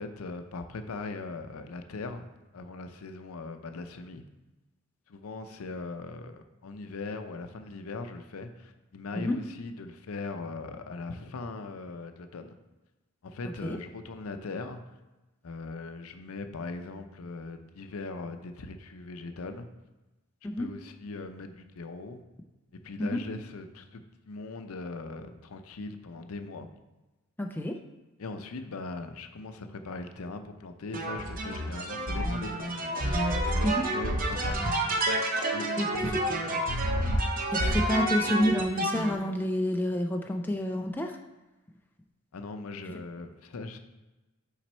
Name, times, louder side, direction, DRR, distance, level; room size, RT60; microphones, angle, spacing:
voice 1, 0.0-2.3 2.5-4.2 5.1-12.6 13.2-14.8 15.4-19.7 20.6-22.2 22.7-26.7 28.2-34.6 35.5-36.7 42.3-43.8, left 3 dB, 90° left, 8 dB, 0.5 m, -40 dB
voice 2, 27.4-27.8 33.6-33.8 35.8-36.2 37.5-41.2, equal, 10° left, 3 dB, 0.3 m, -29 dB
sound 1, 30.9-39.1, right 1 dB, 40° right, 0.7 m, -29 dB
6.0 x 4.0 x 4.3 m, 1.1 s
head